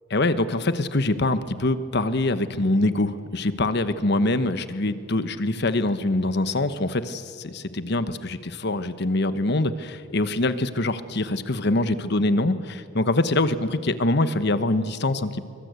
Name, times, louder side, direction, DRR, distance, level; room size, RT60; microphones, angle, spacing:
voice 1, 0.1-15.4, left 2 dB, 60° left, 11 dB, 1.2 m, -24 dB
25.0 x 24.5 x 8.2 m, 2.4 s
head